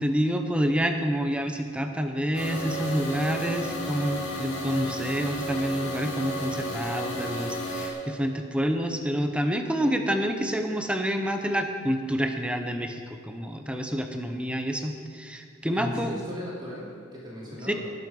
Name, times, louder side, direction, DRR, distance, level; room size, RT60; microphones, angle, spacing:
voice 1, 0.0-16.1 17.7-17.8, equal, 5° right, 5 dB, 0.9 m, -28 dB
sound 1, 2.3-7.9, equal, 65° left, 3.1 m, -32 dB
voice 2, 15.7-17.7, equal, 20° right, -6 dB, 2.9 m, -37 dB
19.5 x 7.9 x 5.4 m, 2.2 s
head